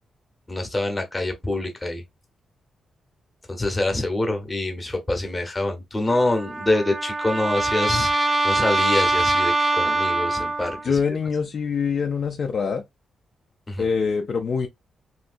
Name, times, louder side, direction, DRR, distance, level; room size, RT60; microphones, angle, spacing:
voice 1, 0.5-2.0 3.5-8.1 8.4-10.8 13.7-13.8, left 2 dB, 15° left, 0.9 m, -25 dB
Trumpet, 6.1-10.9, right 2 dB, 25° right, 0.6 m, -23 dB
voice 2, 10.8-12.8 13.8-14.7, left 5 dB, 45° left, 0.4 m, -24 dB
3.1 x 2.8 x 2.5 m
wide cardioid pair, 165°, 0 cm